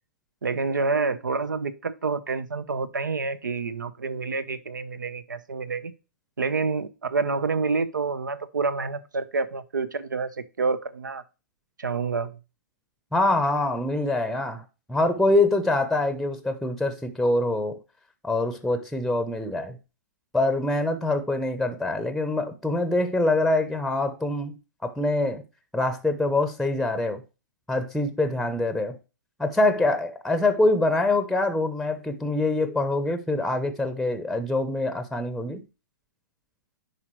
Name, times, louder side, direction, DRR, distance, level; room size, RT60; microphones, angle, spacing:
voice 1, 0.4-5.9 6.4-10.3 10.6-11.2 11.8-12.4, right 4 dB, 85° right, 0.8 m, -28 dB
voice 2, 13.1-14.6 14.9-17.8 18.2-19.8 20.3-24.6 24.8-25.4 25.7-27.2 27.7-29.0 29.4-35.6, left 2 dB, ahead, 0.7 m, -24 dB
9.7 x 5.1 x 3.1 m
hypercardioid pair, 125°, 10 cm